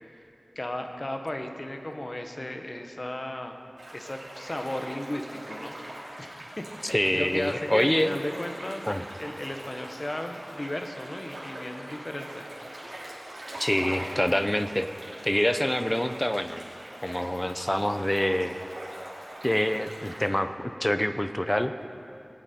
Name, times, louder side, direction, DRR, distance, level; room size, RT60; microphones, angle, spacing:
voice 1, 0.5-3.6 3.9-5.7 6.2-8.8 9.2-12.5, left 1 dB, 40° left, 4 dB, 1.1 m, -35 dB
sound 1, 3.8-20.3, right 1 dB, 75° right, 3.3 m, -42 dB
voice 2, 6.8-8.1 8.9-9.0 13.5-14.9 15.2-16.6 17.0-18.6 19.4-21.7, left 1 dB, 15° left, 9 dB, 0.6 m, -26 dB
19.5 x 8.9 x 4.4 m, 2.7 s
wide cardioid pair, 50°, 0 cm